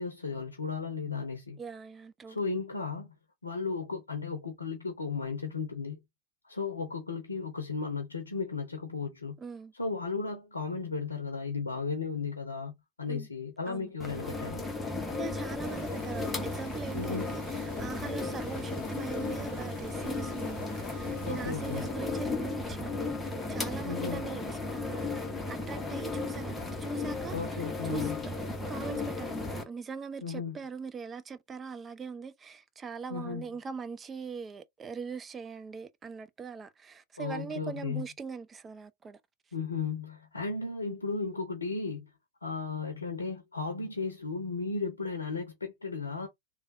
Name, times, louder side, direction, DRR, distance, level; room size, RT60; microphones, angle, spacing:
voice 1, 0.0-1.6 2.3-3.1 3.4-6.0 6.4-9.4 9.7-14.6 16.9-17.3 21.2-21.9 23.8-24.2 27.3-28.2 30.2-30.6 33.1-33.4 37.2-38.0 39.5-42.1 42.4-46.3, left 4 dB, 75° left, 0.6 m, -35 dB
voice 2, 1.6-2.4 9.4-9.7 13.1-13.3 13.7-13.9 14.9-28.1 28.7-39.2, right 5 dB, 20° right, 0.4 m, -41 dB
sound 1, 14.0-29.6, left 3 dB, 10° left, 0.8 m, -35 dB
sound 2, 15.6-21.9, right 4 dB, 65° right, 0.9 m, -54 dB
3.2 x 2.2 x 2.5 m
figure-of-eight pair, 90°, 0 cm